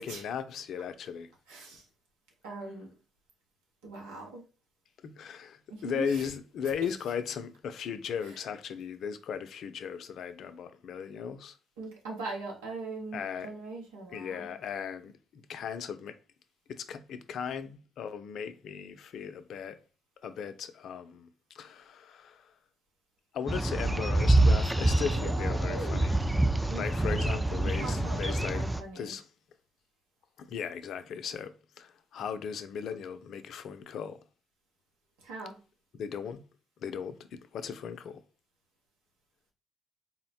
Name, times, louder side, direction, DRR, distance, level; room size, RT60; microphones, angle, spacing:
voice 1, 0.0-1.3 5.0-11.6 13.1-13.5 14.1-16.2 16.7-19.8 20.2-21.3 21.5-22.5 23.3-26.2 26.8-28.7 28.9-29.3 30.4-34.2 36.0-36.4 36.8-38.2, left 7 dB, 65° left, 0.4 m, -37 dB
voice 2, 1.5-1.8 2.4-2.9 3.8-4.4 5.7-6.3 6.8-6.9 8.2-8.3 11.8-14.5 25.1-26.1 26.7-29.1 35.2-35.6, right 2 dB, 85° right, 1.1 m, -41 dB
sound 1, 23.5-28.8, right 2 dB, 5° right, 0.4 m, -26 dB
3.9 x 2.1 x 4.1 m
hypercardioid pair, 55°, 0 cm